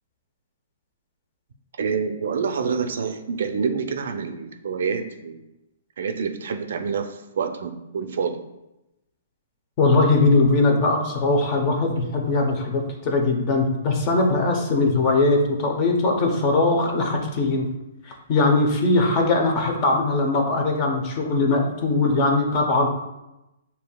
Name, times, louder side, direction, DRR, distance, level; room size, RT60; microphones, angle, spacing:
voice 1, 1.8-5.4 6.0-8.4, right 6 dB, 70° right, 7 dB, 0.4 m, -27 dB
voice 2, 9.8-17.7 18.1-22.9, left 3 dB, 30° left, 2 dB, 0.7 m, -20 dB
6.8 x 2.8 x 2.3 m, 0.94 s
hypercardioid pair, 155°, 0 cm